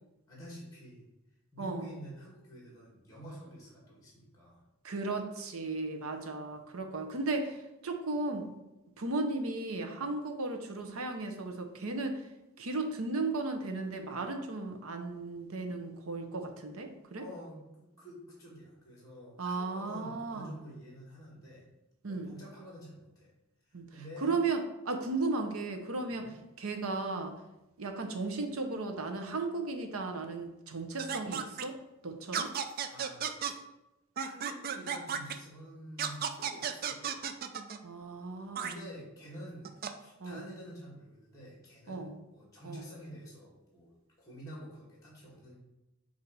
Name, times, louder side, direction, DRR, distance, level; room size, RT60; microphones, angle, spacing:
voice 1, 0.3-1.0 1.5-4.6 17.2-21.6 22.1-23.3 23.9-24.3 26.1-26.3 32.9-33.5 34.2-37.2 38.6-39.7 40.0-43.9 44.2-45.5, equal, 15° left, -4 dB, 1.9 m, -48 dB
voice 2, 1.6-1.9 4.8-8.5 9.0-12.3 12.6-17.2 19.4-20.6 22.0-22.3 23.7-23.8 24.2-26.3 26.6-27.4 27.8-31.8 32.0-32.5 37.8-38.7 40.2-40.4 41.9-42.2 42.6-42.9, right 3 dB, 70° right, 5 dB, 0.8 m, -35 dB
sound 1, 31.0-31.6 32.3-33.5 34.2-35.3 36.0-37.8 38.5-38.7 39.6-39.9, right 7 dB, 45° right, 0.4 m, -34 dB
7.8 x 2.7 x 4.7 m, 0.94 s
head